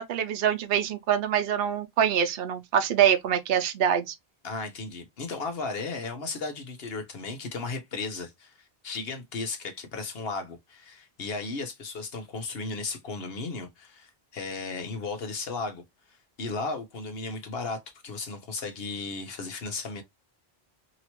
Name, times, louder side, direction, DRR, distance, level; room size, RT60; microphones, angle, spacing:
voice 1, 0.0-4.1, right 9 dB, 70° right, 0.8 m, -25 dB
voice 2, 4.4-8.6 8.8-15.8 16.4-20.0, left 3 dB, 70° left, 1.1 m, -35 dB
2.9 x 2.9 x 2.9 m
omnidirectional pair, 1.0 m